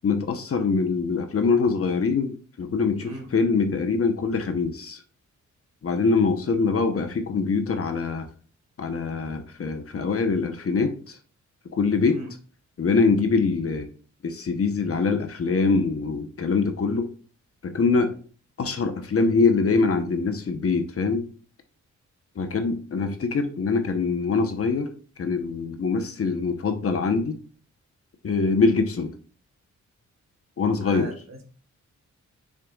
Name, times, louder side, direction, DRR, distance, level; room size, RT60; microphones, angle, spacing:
voice 1, 0.0-5.0 5.8-8.3 8.8-10.9 11.7-12.2 12.8-13.9 14.2-17.1 17.6-18.2 18.6-21.2 22.4-24.9 25.2-27.4 28.2-29.1 30.6-31.1, left 4 dB, 50° left, 1.0 m, -23 dB
voice 2, 3.0-3.3 12.0-12.3 30.8-31.4, right 2 dB, 60° right, 2.4 m, -38 dB
6.7 x 6.4 x 2.4 m
cardioid pair, 100°, 30 cm